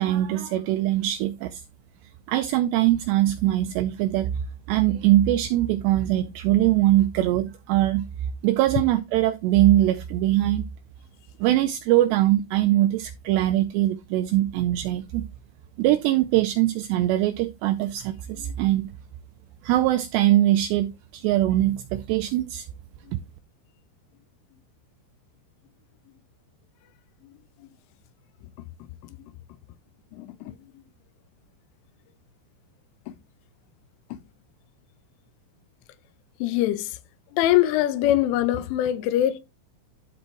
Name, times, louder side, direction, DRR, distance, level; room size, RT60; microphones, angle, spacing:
voice 1, 0.0-1.6 2.3-4.3 4.7-8.0 8.4-10.6 11.4-15.3 15.8-18.9 19.6-22.7, right 14 dB, 90° right, 2.4 m, -22 dB
voice 2, 30.1-30.8 33.1-33.2 34.1-34.2 36.4-37.0 37.3-39.4, left 13 dB, 85° left, 3.1 m, -24 dB
12.5 x 4.3 x 3.0 m
omnidirectional pair, 5.5 m